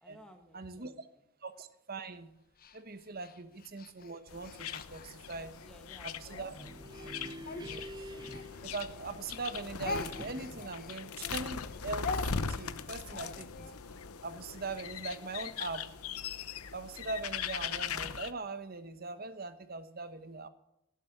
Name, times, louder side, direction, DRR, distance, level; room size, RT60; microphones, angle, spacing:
voice 1, 0.0-0.9 5.6-7.1, equal, 5° left, 5 dB, 1.4 m, -57 dB
voice 2, 0.5-1.1 1.4-2.3 2.7-5.5 6.0-6.5 7.0-7.1 7.7-8.1 8.6-12.1 12.5-13.7 14.2-15.9 16.7-20.5, right 3 dB, 40° right, 11 dB, 1.1 m, -41 dB
Speech, 2.6-5.7 6.3-9.1 9.4-13.8, left 3 dB, 40° left, 0.9 m, -43 dB
sound 1, 4.3-18.3, left 6 dB, 80° left, 0.8 m, -40 dB
sound 2, 6.4-9.4 9.8-10.8, equal, 20° right, 0.7 m, -47 dB
17.5 x 7.5 x 9.6 m, 0.82 s
head